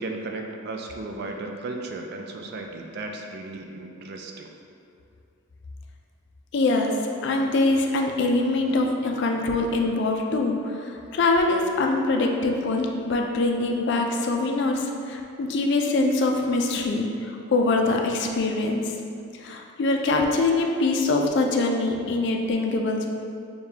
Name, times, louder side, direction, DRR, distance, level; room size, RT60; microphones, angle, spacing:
voice 1, 0.0-4.5, right 2 dB, 50° right, 3 dB, 0.3 m, -35 dB
voice 2, 6.5-18.9 19.3-23.1, left 2 dB, 55° left, 2 dB, 0.4 m, -24 dB
6.6 x 2.2 x 2.8 m, 2.5 s
head